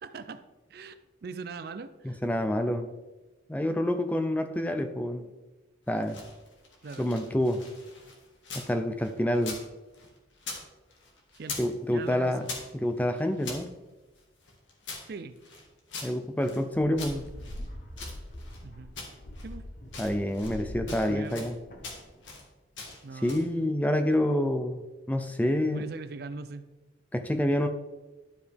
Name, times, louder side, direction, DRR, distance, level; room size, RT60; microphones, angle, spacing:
voice 1, 0.0-0.4 0.7-2.2 6.8-7.1 11.4-12.5 15.1-15.4 18.6-19.0 19.4-19.6 20.9-21.6 23.0-23.5 25.7-26.7, right 4 dB, 55° right, 12 dB, 0.4 m, -41 dB
voice 2, 2.0-2.9 3.5-5.3 5.9-6.2 7.0-7.6 8.5-9.6 11.6-12.4 12.7-13.7 16.0-17.3 20.0-21.5 23.2-25.9 27.1-27.7, left 1 dB, 10° left, 7 dB, 0.4 m, -27 dB
sound 1, 5.9-8.7 9.0-10.6 10.9-11.7 12.0-13.6 14.2-16.6 17.0-18.6 19.0-19.5 19.8-20.6 20.9-21.5 21.8-22.4 22.8-23.5, left 3 dB, 80° left, 1.7 m, -42 dB
sound 2, 16.7-22.2, left 1 dB, 45° left, 1.0 m, -43 dB
11.5 x 4.9 x 3.4 m, 1.1 s
head